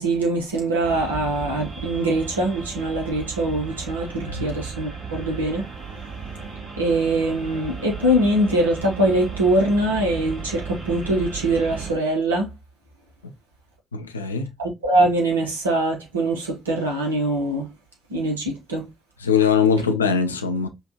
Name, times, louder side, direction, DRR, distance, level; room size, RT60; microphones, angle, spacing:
voice 1, 0.0-5.6 6.8-12.5 14.6-17.7 18.1-18.9, right 1 dB, 85° right, 0.9 m, -23 dB
sound 1, 0.8-11.9, right 5 dB, 50° right, 1.8 m, -35 dB
voice 2, 13.9-14.5 19.2-20.7, left 6 dB, 85° left, 0.4 m, -21 dB
5.6 x 2.4 x 2.8 m
figure-of-eight pair, 40°, 0 cm